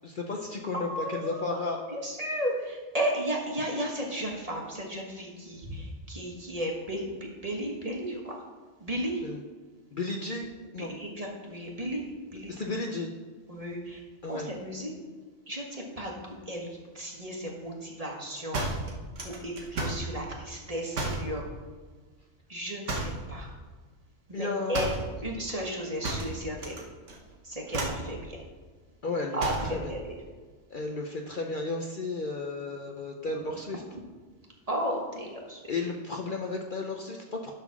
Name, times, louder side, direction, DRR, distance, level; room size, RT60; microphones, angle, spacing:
voice 1, 0.0-1.8 9.2-9.4 9.9-10.5 10.7-10.9 12.5-13.1 14.2-14.5 24.3-24.9 29.0-29.9 30.7-33.8 35.7-37.5, left 3 dB, 50° left, 1 dB, 0.8 m, -33 dB
voice 2, 0.7-1.6 1.9-8.4 8.8-9.2 10.8-12.1 12.3-12.8 13.5-14.9 15.5-18.6 19.2-21.5 22.5-23.5 24.3-26.8 27.4-28.4 29.3-30.1 34.7-35.6, equal, 30° right, -1 dB, 1.5 m, -34 dB
sound 1, 18.5-20.1 20.9-21.3 22.9-23.3 24.7-25.1 26.0-26.8 27.1-27.4 27.7-28.1 29.4-29.8, right 2 dB, 70° right, 1.7 m, -32 dB
11.5 x 4.0 x 6.0 m, 1.4 s
omnidirectional pair, 1.3 m